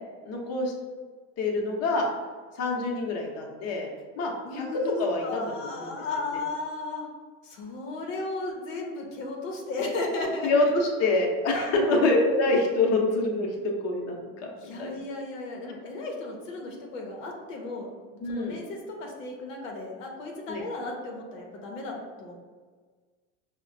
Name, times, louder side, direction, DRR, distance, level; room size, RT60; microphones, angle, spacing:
voice 1, 0.2-0.7 1.4-2.1 2.5-3.9 4.2-5.9 6.3-6.4 10.4-14.5 14.8-15.0 18.2-18.6 20.5-20.6, left 2 dB, 40° left, 0 dB, 0.8 m, -26 dB
voice 2, 4.4-7.1 7.4-10.5 11.8-12.0 14.6-18.0 18.3-22.4, left 2 dB, 85° left, -1 dB, 0.8 m, -35 dB
4.8 x 2.1 x 2.6 m, 1.5 s
supercardioid pair, 100°, 37 cm